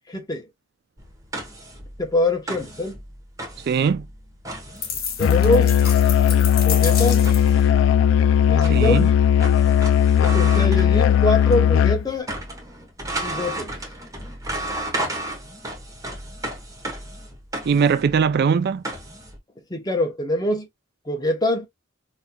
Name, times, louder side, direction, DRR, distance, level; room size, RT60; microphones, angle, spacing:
voice 1, 0.1-0.5 2.0-3.0 5.2-5.8 6.6-7.3 8.4-9.1 10.2-12.3 13.2-13.7 19.7-20.7 21.1-21.7, left 1 dB, 20° left, 0.9 m, -24 dB
sound 1, 1.0-11.7 12.0-19.4, right 1 dB, 15° right, 1.0 m, -34 dB
voice 2, 3.6-4.1 8.7-9.1 17.6-18.8, right 6 dB, 55° right, 0.3 m, -20 dB
sound 2, 4.8-7.6, left 6 dB, 50° left, 1.2 m, -30 dB
Musical instrument, 5.2-12.1, left 9 dB, 70° left, 0.3 m, -17 dB
4.2 x 2.7 x 2.2 m
head